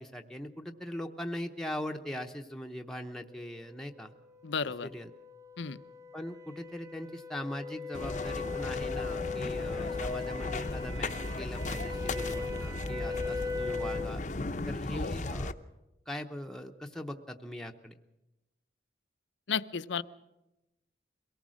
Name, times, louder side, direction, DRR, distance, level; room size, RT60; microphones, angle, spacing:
voice 1, 0.0-4.1 4.6-5.1 6.1-14.2 14.7-15.6 16.1-18.0, equal, 5° left, 3 dB, 0.8 m, -40 dB
sound 1, 4.3-14.2, left 4 dB, 15° right, 1.0 m, -39 dB
voice 2, 4.4-4.9 5.6-5.8 14.9-15.1 19.5-20.0, left 6 dB, 80° left, 14 dB, 0.7 m, -33 dB
sound 2, 7.9-15.5, left 2 dB, 40° left, 0.7 m, -36 dB
23.0 x 18.0 x 6.4 m, 0.96 s
head